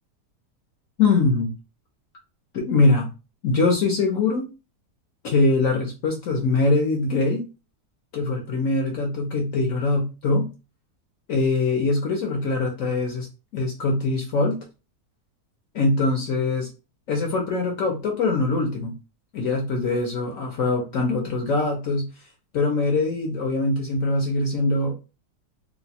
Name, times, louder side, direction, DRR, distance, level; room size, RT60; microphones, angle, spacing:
voice 1, 1.0-1.5 2.5-3.1 3.4-4.5 5.2-7.5 8.1-10.5 11.3-13.3 13.5-14.6 15.7-16.7 17.1-18.9 19.3-22.1 22.5-24.9, left 3 dB, 60° left, 1 dB, 1.0 m, -22 dB
2.8 x 2.2 x 4.0 m, 0.30 s
omnidirectional pair, 1.8 m